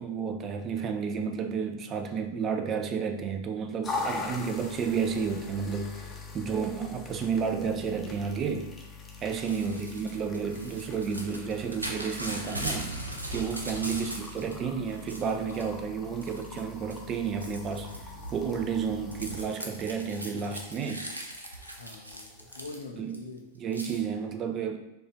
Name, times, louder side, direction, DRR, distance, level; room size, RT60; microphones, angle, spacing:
voice 1, 0.0-6.1 6.3-8.7 9.2-12.9 13.3-21.1 23.0-23.2 23.6-24.8, right 6 dB, 30° right, 6 dB, 0.4 m, -31 dB
sound 1, 3.8-22.6, left 3 dB, 20° left, 0.6 m, -42 dB
Crumpling crinkling / Tearing, 9.3-14.5 14.9-15.7 16.2-16.6 16.9-23.2 23.7-24.0, right 1 dB, 85° right, 0.5 m, -39 dB
voice 2, 21.8-23.5, left 3 dB, 70° left, 4 dB, 0.4 m, -44 dB
4.4 x 2.4 x 3.0 m, 0.93 s
figure-of-eight pair, 90°, 0 cm